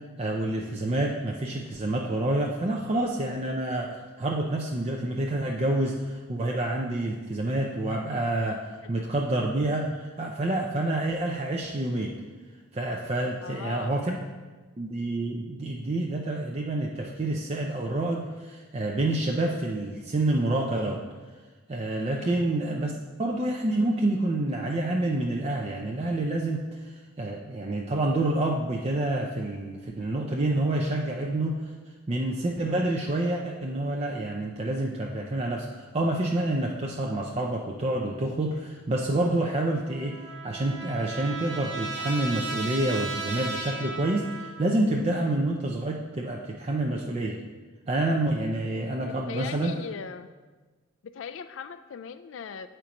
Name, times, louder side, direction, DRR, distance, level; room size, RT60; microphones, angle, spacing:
voice 1, 0.2-12.1 12.7-14.2 14.8-21.0 21.7-22.9 23.2-26.9 27.2-31.6 32.1-47.4 47.9-49.7, right 1 dB, 30° right, -1 dB, 0.5 m, -28 dB
voice 2, 13.4-14.0 22.2-22.5 45.2-45.5 49.0-50.3 51.0-52.7, left 6 dB, 65° left, 11 dB, 0.3 m, -40 dB
Trumpet, 39.7-44.8, right 3 dB, 60° right, 1.3 m, -36 dB
8.3 x 4.4 x 5.1 m, 1.3 s
head